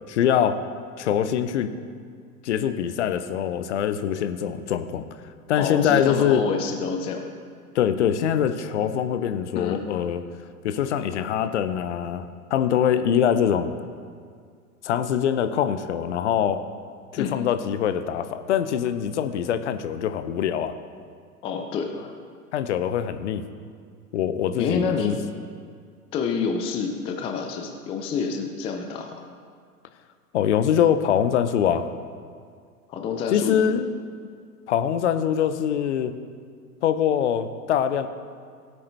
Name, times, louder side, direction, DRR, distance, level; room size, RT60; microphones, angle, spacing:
voice 1, 0.1-0.6 1.0-1.7 2.4-5.0 5.5-6.5 7.7-10.2 10.6-13.7 14.8-16.6 17.1-20.7 22.5-23.4 24.1-25.2 30.3-31.9 33.3-34.0 34.7-36.1 36.8-38.1, left 9 dB, 50° left, 10 dB, 0.8 m, -23 dB
voice 2, 5.5-7.2 9.5-9.8 17.2-17.4 21.4-22.1 24.6-25.2 26.1-29.2 32.9-33.6, left 5 dB, 10° left, 4 dB, 0.5 m, -28 dB
17.5 x 8.6 x 3.4 m, 2.1 s
figure-of-eight pair, 100°, 46 cm